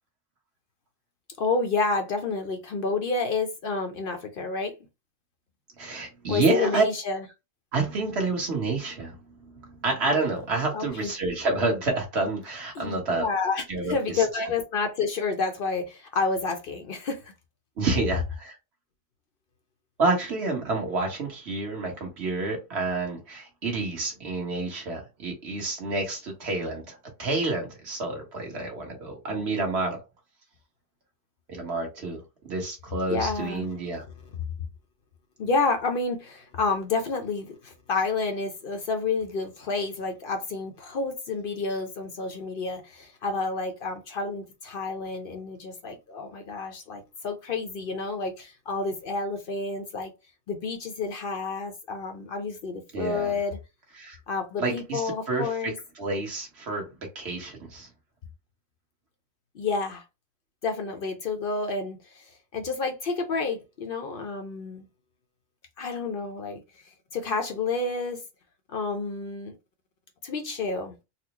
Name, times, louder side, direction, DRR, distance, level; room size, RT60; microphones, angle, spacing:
voice 1, 1.4-4.8 6.3-7.2 10.7-11.1 12.7-17.3 33.1-33.7 35.4-50.1 50.5-53.6 54.3-55.8 59.5-60.0 60.6-64.9 65.8-68.2 68.7-69.6 70.2-71.0, left 4 dB, 55° left, 0.6 m, -29 dB
voice 2, 5.8-6.8 7.7-13.3 13.7-14.2 17.8-18.5 20.0-30.0 31.5-34.0 52.9-53.3 54.0-54.2 54.6-56.8 57.1-57.9, right 3 dB, 55° right, 1.4 m, -29 dB
4.1 x 2.0 x 2.8 m
omnidirectional pair, 1.4 m